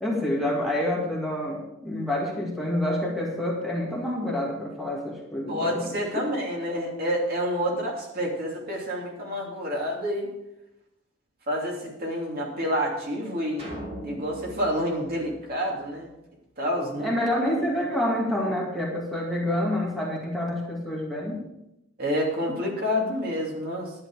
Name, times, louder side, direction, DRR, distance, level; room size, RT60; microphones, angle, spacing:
voice 1, 0.0-5.9 17.0-21.5, left 1 dB, ahead, -3 dB, 2.1 m, -28 dB
voice 2, 5.5-10.3 11.5-13.6 14.0-16.1 16.6-17.1 22.0-23.9, equal, 45° right, -2 dB, 2.9 m, -28 dB
sound 1, 13.6-16.1, right 1 dB, 30° right, 3.0 m, -40 dB
11.0 x 11.0 x 4.8 m, 0.87 s
head